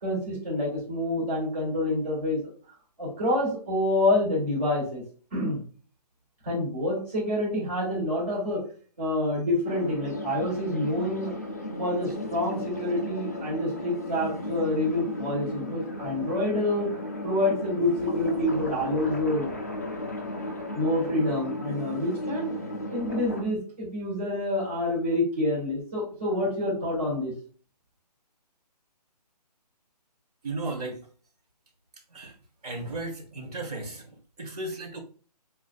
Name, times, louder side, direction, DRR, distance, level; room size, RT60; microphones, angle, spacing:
voice 1, 0.0-2.5 3.0-5.0 5.3-5.6 6.4-8.6 9.0-11.3 11.8-16.9 17.2-19.5 20.7-22.5 22.9-27.3, left 1 dB, 20° right, -6 dB, 1.9 m, -27 dB
sound 1, 9.6-23.4, left 1 dB, 25° left, 0.3 m, -35 dB
voice 2, 30.4-31.0 32.1-32.3 32.6-35.0, right 2 dB, 65° right, 1 dB, 1.6 m, -35 dB
6.1 x 2.4 x 2.3 m, 0.43 s
hypercardioid pair, 175°, 21 cm